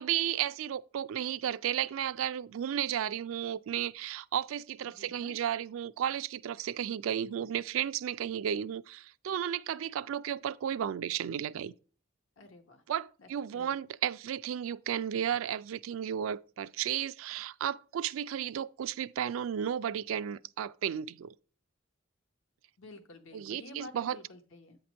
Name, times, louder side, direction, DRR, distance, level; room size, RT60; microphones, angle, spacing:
voice 1, 0.0-11.7 12.9-21.3 23.3-24.2, right 9 dB, 80° right, 0.3 m, -33 dB
voice 2, 4.8-5.4 12.4-12.8 13.2-13.7 22.8-24.8, left 2 dB, 70° left, 1.0 m, -51 dB
8.5 x 2.9 x 6.1 m
head